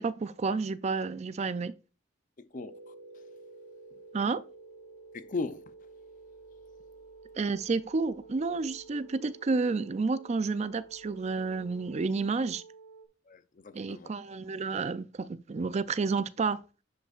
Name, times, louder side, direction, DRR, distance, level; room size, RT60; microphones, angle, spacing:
voice 1, 0.0-1.7 4.1-4.4 7.4-12.6 13.7-16.6, right 4 dB, 35° right, 0.4 m, -30 dB
voice 2, 2.4-2.9 3.9-4.0 5.1-5.7 13.3-14.1, left 3 dB, 40° left, 0.5 m, -38 dB
sound 1, 2.5-13.0, right 3 dB, 55° right, 1.6 m, -51 dB
10.5 x 5.4 x 2.4 m
head